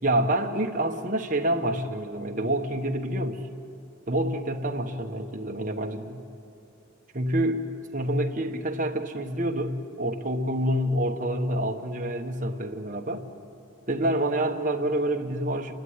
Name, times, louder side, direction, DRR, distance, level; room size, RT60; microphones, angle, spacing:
voice 1, 0.0-3.4 4.1-6.2 7.1-7.7 7.9-13.2 13.9-15.7, right 1 dB, 40° right, 3 dB, 1.2 m, -27 dB
28.5 x 12.0 x 9.6 m, 2.6 s
head